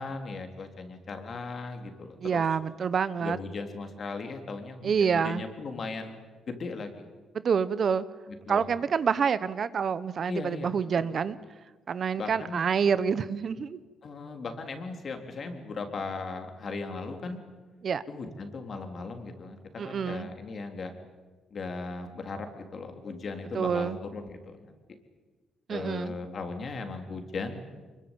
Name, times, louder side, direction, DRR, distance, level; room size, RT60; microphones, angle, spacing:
voice 1, 0.0-2.4 3.2-6.1 6.5-7.1 8.3-8.7 10.3-10.8 12.2-12.7 14.0-17.4 18.1-20.9 21.5-24.7 25.7-27.6, left 3 dB, 50° left, 5 dB, 3.6 m, -37 dB
voice 2, 2.2-3.4 4.8-5.4 7.4-8.0 8.5-11.4 11.9-13.8 17.8-18.0 19.8-20.3 23.5-24.0 25.7-26.2, right 6 dB, 50° right, 15 dB, 1.0 m, -27 dB
24.5 x 22.5 x 9.1 m, 1.3 s
cardioid pair, 90°, 0 cm